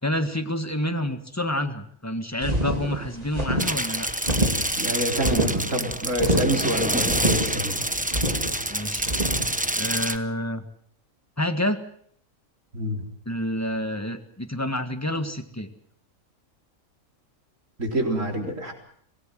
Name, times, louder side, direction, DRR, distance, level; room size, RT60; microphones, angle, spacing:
voice 1, 0.0-4.1 8.7-9.1 9.8-10.6 11.4-11.8 13.2-15.7, left 1 dB, 10° left, 8 dB, 1.7 m, -28 dB
sound 1, 2.4-9.5, right 1 dB, 25° right, 3.3 m, -27 dB
sound 2, 3.6-10.2, right 1 dB, 5° right, 0.8 m, -27 dB
voice 2, 4.8-7.8 12.7-13.0 17.8-18.7, equal, 60° right, 2 dB, 4.5 m, -26 dB
25.5 x 18.0 x 7.6 m, 0.64 s
omnidirectional pair, 1.5 m